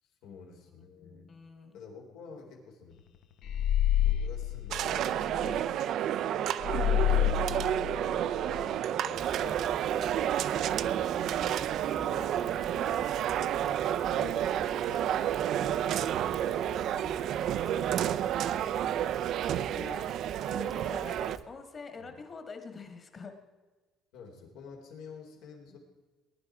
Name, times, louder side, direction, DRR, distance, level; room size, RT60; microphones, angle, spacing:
voice 1, 0.0-1.4 1.7-3.0 4.0-5.3 6.3-12.3 14.0-19.3 22.0-22.2 24.1-25.8, left 5 dB, 80° left, 1 dB, 3.8 m, -50 dB
voice 2, 1.0-1.8 5.4-5.6 12.0-13.1 19.5-20.2 20.5-23.3, left 4 dB, 25° left, 6 dB, 1.7 m, -46 dB
sound 1, 3.4-5.6 6.6-8.6, left 11 dB, 50° left, 0.8 m, -28 dB
sound 2, 4.7-21.4, right 10 dB, 50° right, 0.5 m, -30 dB
Rain, 9.1-21.4, right 4 dB, 15° right, 0.9 m, -49 dB
20.5 x 11.0 x 4.8 m, 1.3 s
cardioid pair, 175°, 0 cm